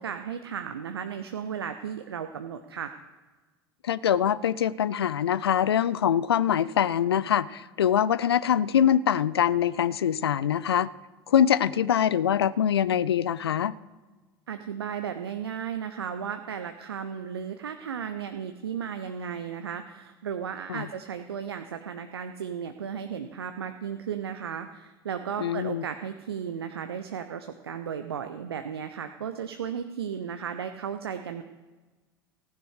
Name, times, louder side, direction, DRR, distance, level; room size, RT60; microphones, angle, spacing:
voice 1, 0.0-2.9 14.5-31.4, right 7 dB, 75° right, 8 dB, 0.7 m, -35 dB
voice 2, 3.8-10.9 11.3-13.7 20.7-20.9 25.4-25.8, left 9 dB, 75° left, 20 dB, 0.4 m, -24 dB
15.5 x 10.5 x 4.9 m, 1.3 s
figure-of-eight pair, 75°, 13 cm